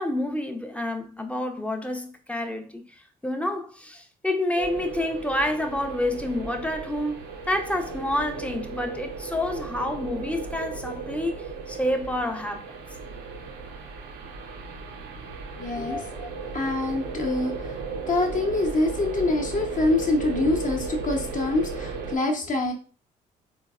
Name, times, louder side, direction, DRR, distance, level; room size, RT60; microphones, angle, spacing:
voice 1, 0.0-7.2 7.5-12.8 15.8-16.0, left 1 dB, 5° left, 0.6 m, -29 dB
sound 1, 4.6-22.2, right 4 dB, 70° right, 0.6 m, -35 dB
voice 2, 15.6-17.8 18.1-22.7, left 2 dB, 40° left, 0.9 m, -25 dB
3.9 x 2.0 x 2.3 m
hypercardioid pair, 45°, 20 cm